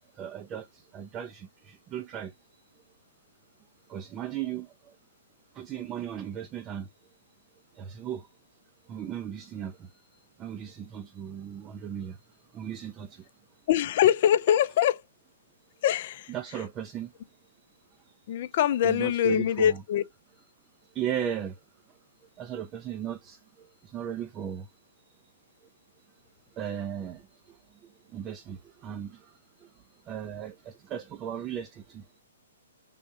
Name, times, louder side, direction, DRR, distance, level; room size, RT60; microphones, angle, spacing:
voice 1, 0.2-2.3 3.9-4.9 5.5-6.9 7.8-8.3 8.9-9.9 10.4-12.2 12.5-13.3 16.3-17.1 18.8-19.8 20.9-21.6 22.4-24.7 26.5-27.6 28.1-29.3 29.6-29.7 30.1-32.2, right 9 dB, 25° right, 0.5 m, -36 dB
voice 2, 13.7-15.0 15.8-16.3 18.3-20.0, left 10 dB, 45° left, 0.5 m, -23 dB
5.4 x 3.5 x 2.7 m
figure-of-eight pair, 125°, 0 cm